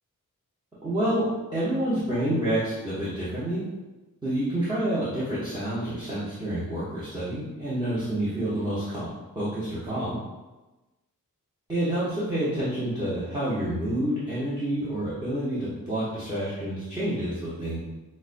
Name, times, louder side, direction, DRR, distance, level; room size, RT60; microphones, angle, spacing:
voice 1, 0.8-3.7 4.2-9.1 9.3-10.2 11.7-17.8, right 1 dB, 15° right, -11 dB, 0.8 m, -28 dB
5.0 x 2.1 x 2.5 m, 1.1 s
wide cardioid pair, 145°, 33 cm